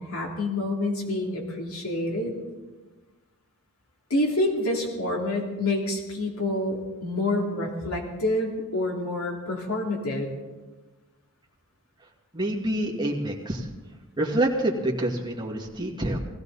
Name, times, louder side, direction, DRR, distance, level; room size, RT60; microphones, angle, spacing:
voice 1, 0.0-2.4 4.1-10.3, left 1 dB, 70° left, 0 dB, 3.0 m, -27 dB
voice 2, 12.3-13.6 14.2-16.2, right 1 dB, 20° right, -2 dB, 2.2 m, -27 dB
19.5 x 15.5 x 4.1 m, 1.2 s
head